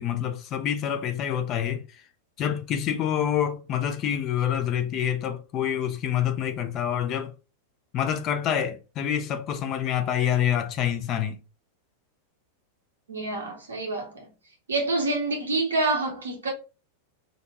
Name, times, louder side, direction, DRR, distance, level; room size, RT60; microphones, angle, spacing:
voice 1, 0.0-2.1 2.4-7.3 7.9-11.4, left 9 dB, 35° left, 0.4 m, -27 dB
voice 2, 13.1-14.3 14.7-16.5, right 2 dB, 70° right, 0.7 m, -27 dB
2.6 x 2.1 x 2.8 m
figure-of-eight pair, 90°, 0 cm